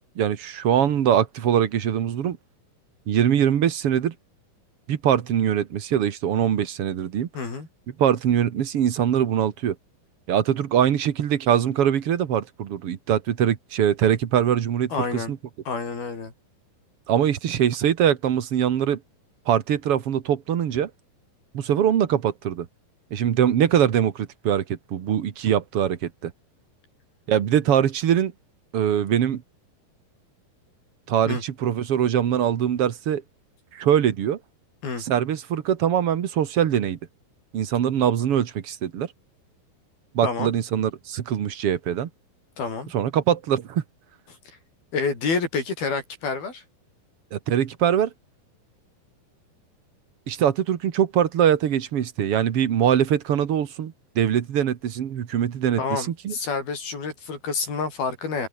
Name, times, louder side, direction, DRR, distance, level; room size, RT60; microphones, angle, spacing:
voice 1, 0.2-2.4 3.1-4.1 4.9-7.3 8.0-9.8 10.3-15.4 17.1-19.0 19.5-20.9 21.5-22.7 23.1-26.3 27.3-28.3 28.7-29.4 31.1-33.2 33.7-34.4 35.0-37.0 37.5-39.1 40.1-42.1 42.9-43.8 47.3-48.1 50.3-56.3, right 9 dB, 55° right, 1.9 m, -22 dB
voice 2, 7.4-7.7 14.9-15.3 15.7-16.3 31.3-31.4 34.8-35.0 40.2-40.5 42.6-42.9 44.9-46.6 55.8-58.5, left 4 dB, 80° left, 8.7 m, -28 dB
omnidirectional pair, 4.3 m